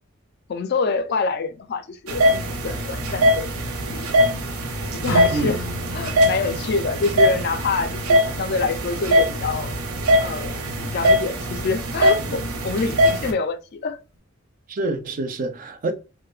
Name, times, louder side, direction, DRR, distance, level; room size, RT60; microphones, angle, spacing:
voice 1, 0.5-3.5 3.9-4.4 4.9-5.6 5.9-9.7 10.2-14.0, left 4 dB, 50° left, 0.3 m, -26 dB
sound 1, 2.1-13.3, equal, 90° right, 0.5 m, -22 dB
Acoustic guitar / Strum, 5.0-10.3, left 1 dB, 85° left, 0.6 m, -35 dB
voice 2, 14.7-15.9, right 2 dB, 40° right, 0.3 m, -27 dB
2.9 x 2.1 x 2.3 m
head